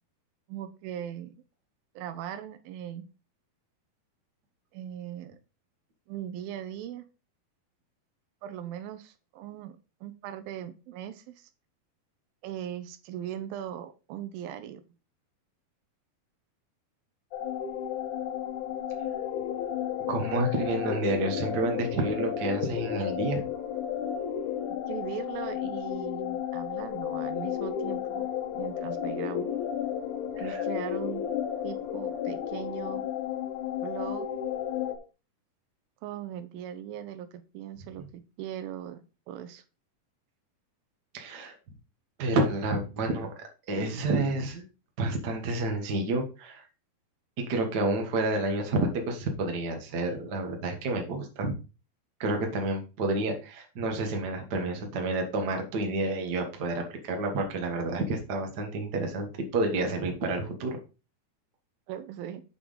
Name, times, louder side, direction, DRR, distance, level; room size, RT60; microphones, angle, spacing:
voice 1, 0.5-1.3 2.0-3.1 4.7-5.4 6.1-7.0 8.4-11.5 12.4-14.8 24.9-28.3 28.6-29.5 30.4-31.2 31.6-33.0 33.8-34.3 36.0-39.6 61.9-62.4, right 10 dB, 80° right, 10 dB, 2.4 m, -39 dB
sound 1, 17.3-35.0, left 9 dB, 70° left, 2.0 m, -33 dB
voice 2, 20.1-23.4 30.3-30.6 41.1-41.5 42.2-43.3 43.7-44.6 45.0-46.6 47.4-51.5 52.2-60.8, right 2 dB, 60° right, 3 dB, 1.0 m, -29 dB
7.8 x 4.7 x 5.2 m, 0.33 s
omnidirectional pair, 4.4 m